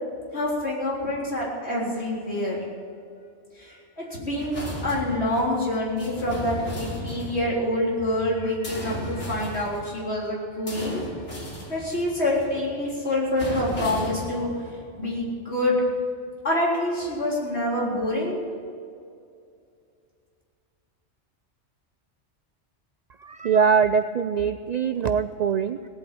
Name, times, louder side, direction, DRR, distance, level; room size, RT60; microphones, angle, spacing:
voice 1, 0.3-2.6 3.6-11.1 11.7-14.5 15.0-15.8 16.4-18.4, left 1 dB, 70° left, -5 dB, 4.2 m, -26 dB
sound 1, 4.4-8.2 8.6-15.3 15.8-15.9, left 1 dB, 90° left, 3.6 m, -36 dB
voice 2, 23.2-25.9, right 6 dB, 60° right, 10 dB, 0.4 m, -23 dB
17.5 x 8.7 x 8.5 m, 2.4 s
omnidirectional pair, 1.2 m